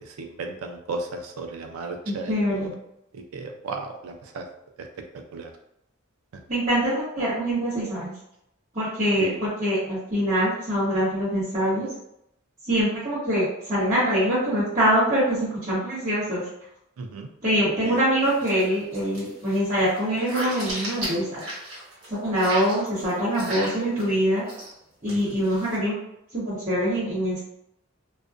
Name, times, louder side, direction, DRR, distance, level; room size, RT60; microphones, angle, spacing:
voice 1, 0.0-2.7 3.1-4.5 4.8-4.9 5.1-5.5 6.3-6.4 9.2-9.4 17.0-17.3 17.8-18.0 25.1-25.4, right 3 dB, 85° right, 4 dB, 0.4 m, -35 dB
voice 2, 2.1-2.7 6.5-8.2 8.7-11.9 12.6-16.4 17.4-21.4 22.1-24.4 25.0-25.9 26.3-27.4, equal, 40° right, -13 dB, 0.9 m, -24 dB
sound 1, 18.2-18.6 18.9-22.1 22.4-24.1 24.4-24.7 25.1-25.8, right 1 dB, 60° right, 1.3 m, -35 dB
2.4 x 2.1 x 2.4 m, 0.78 s
head